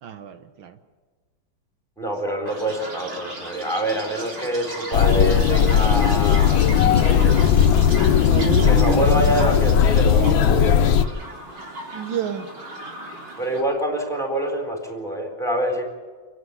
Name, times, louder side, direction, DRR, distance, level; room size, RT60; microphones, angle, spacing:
voice 1, 0.0-0.8 8.3-9.1 11.9-12.5, right 8 dB, 75° right, 8 dB, 1.7 m, -29 dB
voice 2, 2.0-7.4 8.6-11.0 13.4-15.8, right 1 dB, ahead, 2 dB, 4.1 m, -26 dB
Chirp tweet, 2.5-13.6, right 2 dB, 60° right, 4.3 m, -36 dB
sound 1, 4.9-11.1, left 8 dB, 75° left, 1.5 m, -17 dB
29.0 x 9.6 x 9.8 m, 1.5 s
omnidirectional pair, 2.2 m